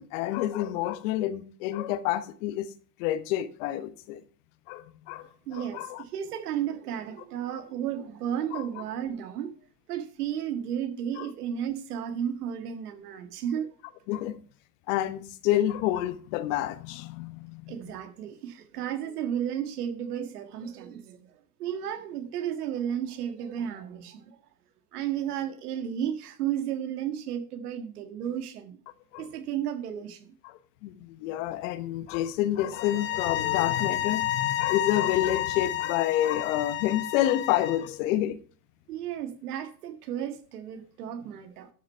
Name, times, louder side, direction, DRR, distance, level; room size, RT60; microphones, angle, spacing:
voice 1, 0.0-2.7 3.0-4.2 4.7-6.0 8.5-8.7 11.2-11.3 14.1-14.3 14.9-17.7 29.1-29.3 30.4-38.4, left 13 dB, 55° left, 1.1 m, -29 dB
voice 2, 5.5-9.5 9.9-13.7 17.7-21.2 21.6-24.4 24.9-28.8 29.2-30.3 38.9-41.7, right 9 dB, 75° right, 1.8 m, -33 dB
sound 1, 32.7-37.9, left 13 dB, 25° left, 1.1 m, -30 dB
12.5 x 6.2 x 4.5 m
hypercardioid pair, 125°, 46 cm